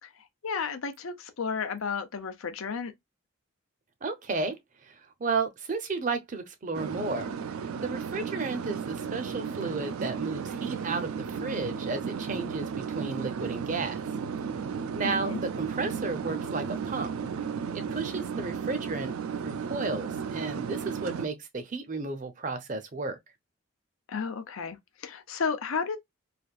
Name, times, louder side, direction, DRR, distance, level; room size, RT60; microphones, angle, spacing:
voice 1, 0.0-2.9 15.0-15.4 24.1-26.0, left 5 dB, 80° left, 0.6 m, -33 dB
voice 2, 4.0-4.6 4.8-7.3 7.8-14.0 15.0-15.3 15.6-17.1 17.7-19.1 19.4-23.2, right 3 dB, 40° right, 0.6 m, -33 dB
sound 1, 6.7-21.3, right 6 dB, 90° right, 0.4 m, -34 dB
3.3 x 2.6 x 2.3 m
head